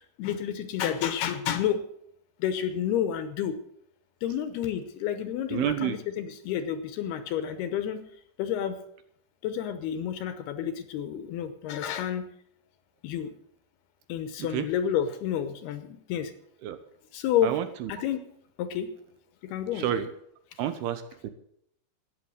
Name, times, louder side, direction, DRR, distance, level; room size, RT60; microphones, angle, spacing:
voice 1, 0.0-1.8 2.4-3.6 4.2-8.0 8.4-8.8 9.4-12.2 13.0-13.3 14.1-16.3 17.1-17.5 17.9-18.2 18.6-18.9 19.4-19.9, left 9 dB, 75° left, 10 dB, 2.7 m, -30 dB
voice 2, 5.5-6.0 14.4-14.7 16.6-16.8 17.4-17.9 19.7-20.1 20.6-21.3, right 10 dB, 75° right, 10 dB, 2.5 m, -30 dB
14.0 x 9.2 x 7.9 m, 0.71 s
omnidirectional pair, 5.1 m